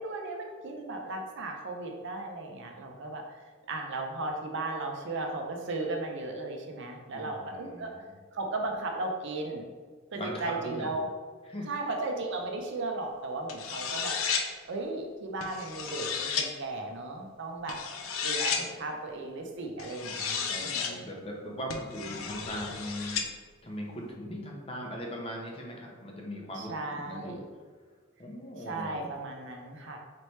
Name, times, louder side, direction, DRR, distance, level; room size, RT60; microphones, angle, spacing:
voice 1, 0.0-8.1 8.3-9.6 10.1-11.1 11.7-14.4 14.6-17.8 18.2-21.1 26.5-27.4 28.6-30.0, right 2 dB, 60° right, 2 dB, 0.6 m, -36 dB
voice 2, 7.1-8.1 10.1-10.9 11.5-11.7 18.5-18.7 20.5-23.2 23.6-27.4 28.2-29.1, equal, 30° left, 0 dB, 0.6 m, -39 dB
sound 1, 13.5-14.5 15.4-16.5 17.7-18.6 19.8-20.9 21.7-23.3, left 6 dB, 85° left, 0.5 m, -33 dB
4.2 x 3.2 x 3.1 m, 1.5 s
head